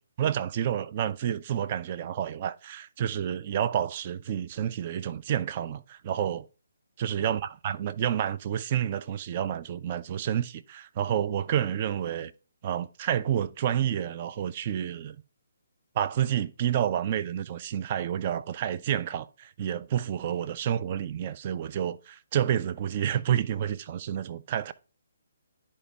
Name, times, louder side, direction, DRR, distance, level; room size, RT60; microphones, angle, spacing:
voice 1, 0.2-6.5 7.0-12.3 12.6-15.2 16.0-24.7, right 10 dB, 35° right, 0.4 m, -29 dB
10.0 x 4.2 x 3.4 m
figure-of-eight pair, 140°, 0 cm